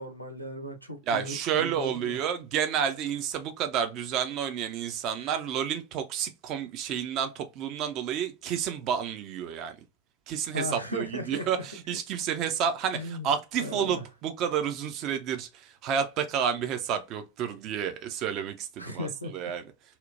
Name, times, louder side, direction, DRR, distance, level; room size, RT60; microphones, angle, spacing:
voice 1, 0.0-2.2 5.2-5.3 10.5-11.6 12.9-13.3 13.6-14.0 18.8-19.3, left 1 dB, 90° right, 0.5 m, -36 dB
voice 2, 1.1-9.8 10.3-19.1 19.3-19.6, right 8 dB, 35° right, 0.4 m, -30 dB
2.8 x 2.0 x 2.3 m
figure-of-eight pair, 90°, 0 cm